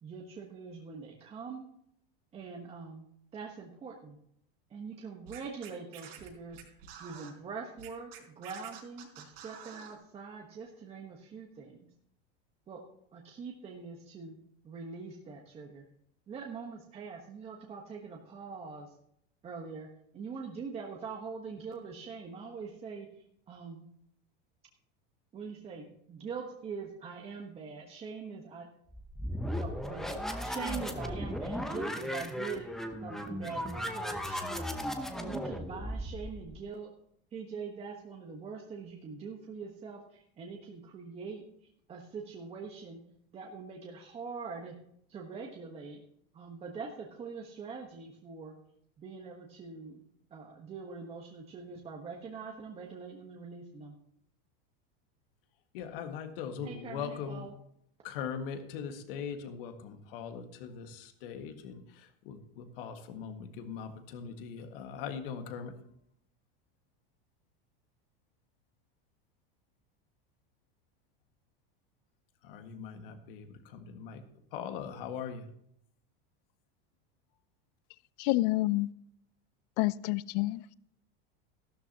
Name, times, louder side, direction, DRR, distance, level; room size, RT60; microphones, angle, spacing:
voice 1, 0.0-1.7 2.3-3.1 3.3-4.2 4.7-6.6 7.0-11.9 12.7-12.8 13.1-14.3 14.6-15.8 16.3-18.9 19.4-19.9 20.1-23.1 23.5-23.9 25.3-28.7 29.5-32.7 33.0-34.7 35.2-36.9 37.3-41.4 41.9-43.0 43.3-44.7 45.1-46.0 46.3-48.5 49.0-50.0 50.3-53.9 56.6-57.5, right 5 dB, 20° right, 1.2 m, -43 dB
Scratching (performance technique), 5.3-7.3 7.8-10.0, right 8 dB, 80° right, 4.2 m, -49 dB
sound 1, 28.9-36.6, equal, ahead, 0.8 m, -36 dB
voice 2, 55.7-57.5 58.0-61.8 62.3-65.7 72.5-73.5 73.7-74.2 74.5-75.5, left 7 dB, 70° left, 1.8 m, -40 dB
voice 3, 78.2-78.9 79.8-80.7, left 19 dB, 45° left, 0.4 m, -28 dB
14.0 x 12.5 x 2.9 m
supercardioid pair, 160°, 29 cm